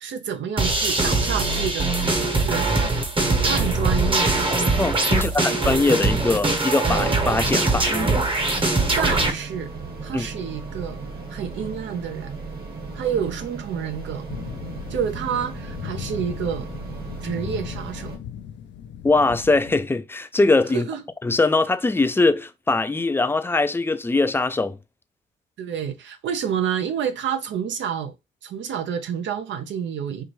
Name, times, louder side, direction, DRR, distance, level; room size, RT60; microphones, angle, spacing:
voice 1, 0.0-2.0 2.3-2.7 3.4-4.3 5.1-5.5 9.0-9.7 10.0-11.0 11.3-12.3 12.9-14.3 14.9-16.7 17.2-18.1 20.7-21.0 25.6-28.1 28.4-30.2, right 8 dB, 65° right, 0.8 m, -28 dB
sound 1, 0.6-9.3, right 2 dB, 25° right, 1.0 m, -22 dB
voice 2, 4.8-8.2 10.1-10.3 19.0-20.9 21.2-24.8, left 3 dB, 10° left, 0.4 m, -21 dB
sound 2, 8.4-18.2, right 4 dB, 50° right, 1.5 m, -36 dB
sound 3, 14.3-19.8, left 9 dB, 65° left, 0.6 m, -37 dB
4.7 x 2.6 x 3.0 m
cardioid pair, 90°, 20 cm